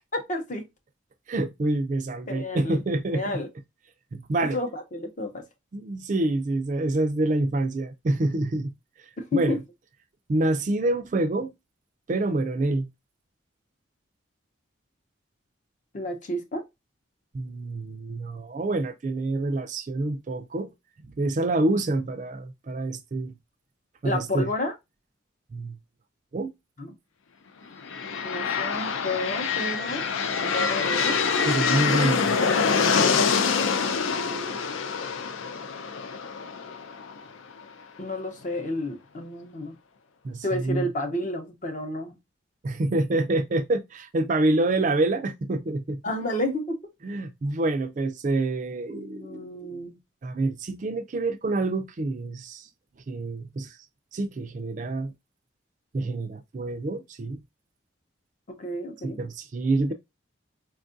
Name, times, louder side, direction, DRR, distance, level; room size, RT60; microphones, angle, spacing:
voice 1, 0.1-0.7 2.3-2.8 3.1-3.5 4.4-5.4 9.2-9.6 15.9-16.6 24.0-24.7 26.8-27.0 28.2-30.1 30.4-31.2 33.5-34.6 38.0-39.8 40.4-42.2 46.0-46.8 48.9-50.0 58.5-59.2, left 1 dB, 40° left, 0.6 m, -31 dB
voice 2, 1.3-3.4 4.1-4.6 5.7-8.7 9.3-9.6 10.3-11.5 12.1-12.9 17.3-20.7 21.2-23.3 24.0-24.5 25.5-25.8 26.3-26.5 31.4-32.4 40.2-40.9 42.6-46.0 47.0-49.8 50.2-52.7 53.1-53.8 54.1-55.1 55.9-57.4 59.0-59.9, right 2 dB, 40° right, 0.3 m, -27 dB
sound 1, 27.8-37.6, left 5 dB, 75° left, 0.4 m, -25 dB
4.3 x 2.3 x 2.5 m
head